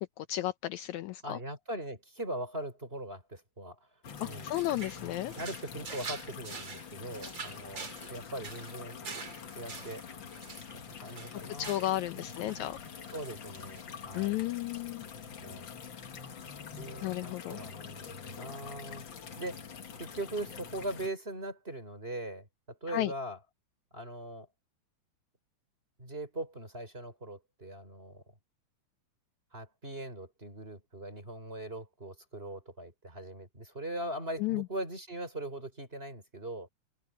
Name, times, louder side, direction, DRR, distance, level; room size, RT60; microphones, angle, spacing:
voice 1, 0.2-1.4 4.2-5.3 11.3-12.8 14.1-15.1 17.0-17.6 22.9-23.1 34.4-34.6, left 15 dB, 75° left, 1.9 m, -33 dB
voice 2, 1.2-3.8 4.2-4.5 5.4-7.8 8.1-9.0 9.5-10.0 10.9-12.7 13.1-14.4 15.4-15.7 16.7-19.1 19.4-19.6 20.0-23.4 23.9-24.5 26.0-28.2 29.5-36.7, right 1 dB, 15° right, 5.2 m, -41 dB
sound 1, 4.0-21.1, left 7 dB, 45° left, 2.0 m, -45 dB
sound 2, 4.2-12.1 12.3-12.7 13.0-13.8, right 5 dB, 40° right, 2.8 m, -46 dB
open air
omnidirectional pair, 3.6 m